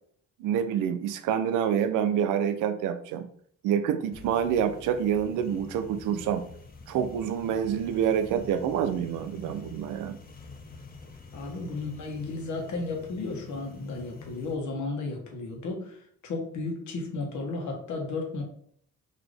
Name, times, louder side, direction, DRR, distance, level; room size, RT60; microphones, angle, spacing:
voice 1, 0.4-3.3 3.6-6.5 6.9-10.2, right 8 dB, 85° right, 10 dB, 0.5 m, -27 dB
sound 1, 4.1-14.5, left 4 dB, 30° left, 0.8 m, -46 dB
voice 2, 11.3-18.4, left 3 dB, 70° left, 1 dB, 1.3 m, -34 dB
4.1 x 2.9 x 3.4 m, 0.63 s
cardioid pair, 90°, 30 cm